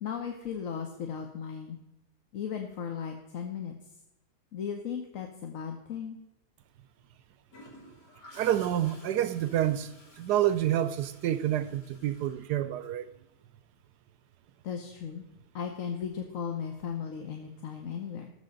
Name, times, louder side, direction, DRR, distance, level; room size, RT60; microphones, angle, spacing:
voice 1, 0.0-1.8 2.3-3.7 4.5-6.2 14.6-15.2 15.5-18.3, left 7 dB, 60° left, 1.3 m, -36 dB
Gurgling / Toilet flush, 7.5-13.2 15.3-15.5, left 1 dB, 90° left, 2.9 m, -54 dB
voice 2, 8.4-9.9 10.2-13.0, right 12 dB, 80° right, 1.2 m, -28 dB
18.0 x 7.3 x 3.9 m
omnidirectional pair, 1.8 m